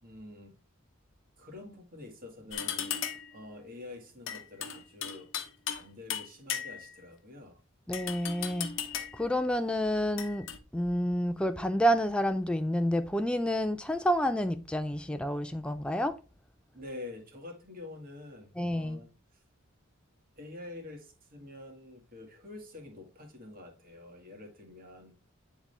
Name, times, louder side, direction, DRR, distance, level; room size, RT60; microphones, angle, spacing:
voice 1, 0.0-0.6 1.4-3.0 3.3-7.6 16.7-19.1 19.3-19.4 20.4-25.1, left 2 dB, 45° right, 1.8 m, -47 dB
sound 1, 2.5-3.4 4.3-5.9 6.1-7.0 7.9-9.3 10.2-10.6, left 9 dB, 60° left, 0.8 m, -36 dB
voice 2, 7.9-8.7 9.1-10.5 10.7-16.2 18.6-19.0, equal, 5° left, 0.3 m, -29 dB
9.2 x 3.7 x 3.3 m
head